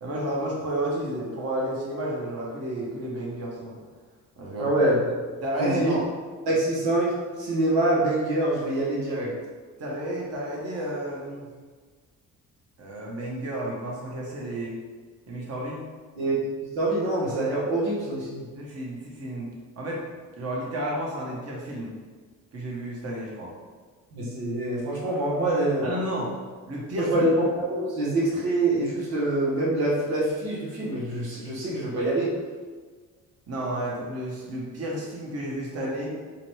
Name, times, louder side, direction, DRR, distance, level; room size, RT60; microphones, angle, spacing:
voice 1, 0.0-3.8 4.4-4.7 5.4-6.0 9.8-11.5 12.8-14.8 15.3-15.8 18.5-19.5 19.8-20.0 20.4-21.9 22.5-23.5 25.8-26.3 26.7-27.3 33.5-36.1, right 1 dB, 45° right, -3 dB, 1.1 m, -31 dB
voice 2, 4.6-5.0 5.6-6.0 6.5-9.3 16.2-16.3 16.7-18.5 24.1-25.9 27.0-32.3, right 1 dB, 80° right, -5 dB, 1.1 m, -25 dB
4.6 x 2.2 x 3.2 m, 1.5 s
supercardioid pair, 70°, 35 cm